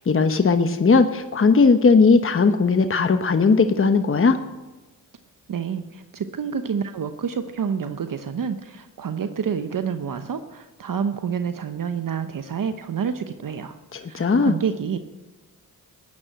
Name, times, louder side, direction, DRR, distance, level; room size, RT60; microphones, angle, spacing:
voice 1, 0.1-4.4 13.9-14.6, left 4 dB, 35° left, 8 dB, 1.1 m, -18 dB
voice 2, 5.5-13.8 14.1-15.0, right 7 dB, 60° right, 9 dB, 0.9 m, -28 dB
14.0 x 9.6 x 8.9 m, 1.1 s
cardioid pair, 60°, 38 cm